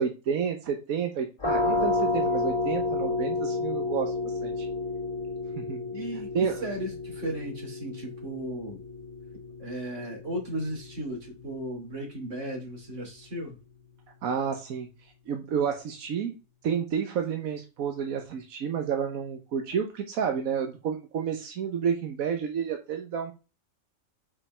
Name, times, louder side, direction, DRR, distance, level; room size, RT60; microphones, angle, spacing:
voice 1, 0.0-4.7 5.6-5.8 6.3-6.7 14.2-14.9 15.3-16.3 16.6-23.3, right 7 dB, 90° right, 5 dB, 1.4 m, -30 dB
sound 1, 1.4-12.9, left 2 dB, 25° left, 1.4 m, -31 dB
voice 2, 5.9-8.8 9.6-13.6, right 1 dB, 60° right, 1 dB, 3.0 m, -35 dB
5.4 x 5.1 x 5.4 m, 0.30 s
omnidirectional pair, 1.4 m